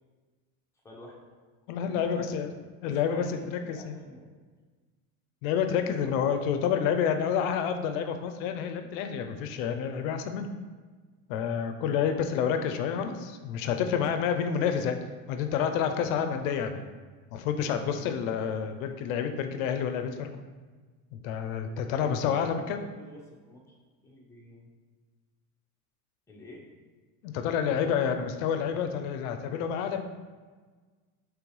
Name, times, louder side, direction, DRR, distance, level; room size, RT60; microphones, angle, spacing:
voice 1, 0.8-1.2 1.8-2.5 2.8-4.3 5.8-6.4 11.9-12.8 13.1-13.2 21.8-23.7 24.0-24.7 26.3-26.7, left 1 dB, 5° left, -2 dB, 0.8 m, -48 dB
voice 2, 1.7-2.5 2.8-3.4 3.7-3.9 5.4-10.5 11.3-15.0 15.3-16.8 17.3-20.3 21.1-22.8 27.2-30.0, left 7 dB, 80° left, 7 dB, 0.5 m, -29 dB
5.2 x 3.2 x 3.1 m, 1.4 s
cardioid pair, 135°, 40 cm